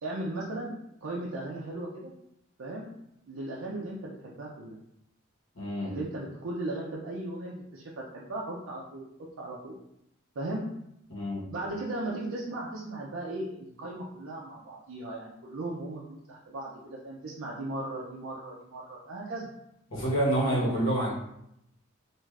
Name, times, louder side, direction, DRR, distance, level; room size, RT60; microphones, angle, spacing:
voice 1, 0.0-0.7 1.0-2.1 2.6-2.9 3.3-4.8 5.8-9.1 9.4-9.8 10.4-10.6 11.5-16.0 16.3-19.5, right 2 dB, 80° right, -4 dB, 0.4 m, -37 dB
voice 2, 5.5-5.9 11.1-11.4 19.9-21.1, right 1 dB, 85° left, -5 dB, 1.1 m, -27 dB
3.2 x 2.4 x 2.3 m, 0.79 s
head